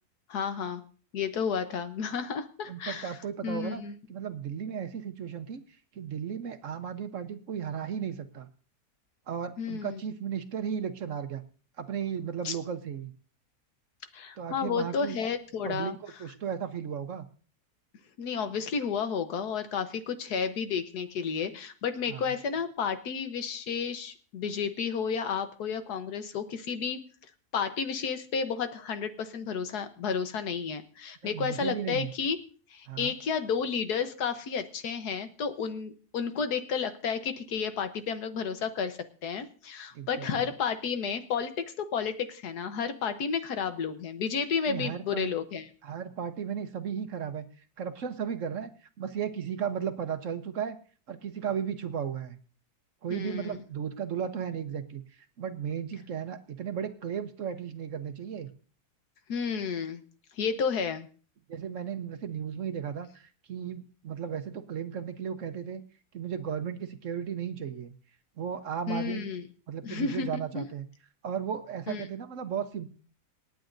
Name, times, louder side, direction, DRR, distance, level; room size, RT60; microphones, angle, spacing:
voice 1, 0.3-0.8 1.1-3.1 3.4-3.9 9.6-10.0 12.4-12.6 14.1-16.0 18.2-27.0 27.5-32.4 32.7-45.7 53.1-53.6 59.3-60.0 60.4-61.1 68.9-69.4 69.8-70.6 71.9-72.0, left 6 dB, 80° left, 9 dB, 1.5 m, -32 dB
voice 2, 2.7-3.8 4.1-5.6 5.9-8.5 9.3-11.4 11.8-13.1 14.4-15.2 15.6-17.2 22.1-22.3 31.2-32.1 32.9-33.1 39.9-40.5 44.7-45.3 45.8-47.5 47.8-50.8 51.1-52.4 53.0-55.0 55.4-58.5 61.5-65.8 66.1-67.9 68.4-69.2 69.7-70.9 71.2-72.9, right 8 dB, 60° right, 9 dB, 1.1 m, -35 dB
27.0 x 9.2 x 2.6 m, 0.40 s
omnidirectional pair, 1.7 m